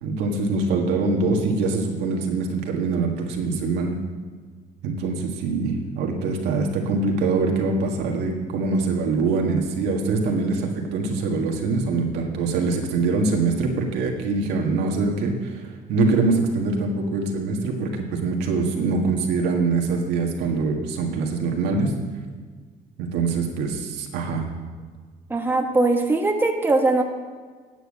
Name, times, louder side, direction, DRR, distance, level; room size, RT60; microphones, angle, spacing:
voice 1, 0.0-4.0 4.8-21.9 23.0-24.5, right 3 dB, 85° right, 1 dB, 1.7 m, -24 dB
voice 2, 25.3-27.0, right 2 dB, 10° right, 2 dB, 1.2 m, -20 dB
9.2 x 8.1 x 6.5 m, 1.5 s
cardioid pair, 110°, 17 cm